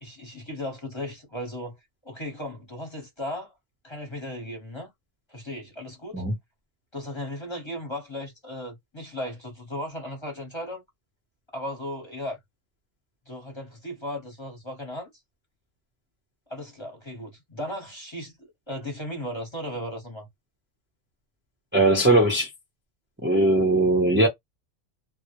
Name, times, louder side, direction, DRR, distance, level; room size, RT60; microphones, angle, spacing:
voice 1, 0.0-1.8 2.0-3.5 3.8-4.9 5.3-6.2 6.9-10.8 11.5-12.4 13.3-15.1 16.5-20.3, left 1 dB, 25° left, 0.8 m, -36 dB
voice 2, 21.7-22.5 23.2-24.3, right 2 dB, 15° right, 0.5 m, -20 dB
2.1 x 2.0 x 2.9 m
omnidirectional pair, 1.3 m